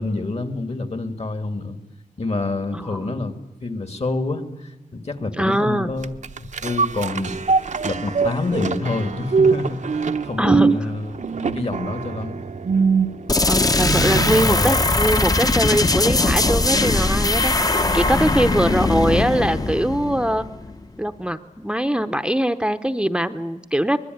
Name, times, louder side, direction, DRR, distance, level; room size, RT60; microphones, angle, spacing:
voice 1, 0.0-1.8 2.2-3.4 3.6-12.4 13.8-14.7, left 2 dB, 50° left, 8 dB, 2.4 m, -28 dB
voice 2, 2.7-3.1 5.4-5.9 10.4-10.8 13.4-20.5 21.0-24.0, right 1 dB, 5° right, 9 dB, 0.9 m, -22 dB
sound 1, 6.0-14.6 15.0-15.1, right 5 dB, 60° right, 0.9 m, -23 dB
sound 2, 13.3-20.9, left 2 dB, 25° left, 1.0 m, -20 dB
24.0 x 20.5 x 9.4 m, 1.1 s
wide cardioid pair, 70°, 14 cm